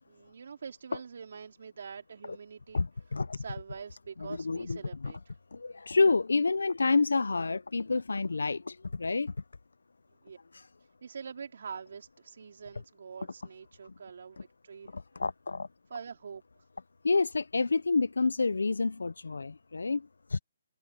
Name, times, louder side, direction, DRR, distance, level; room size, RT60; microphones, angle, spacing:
voice 1, 0.1-5.4 10.2-10.4 11.0-14.9 15.9-16.4, right 6 dB, 65° right, 4.3 m, -45 dB
voice 2, 2.7-3.4 4.3-5.1 5.5-9.3 10.5-10.7 14.9-15.7 17.0-20.0 20.3-20.4, left 3 dB, 85° left, 0.6 m, -28 dB
hypercardioid pair, 155°, 0 cm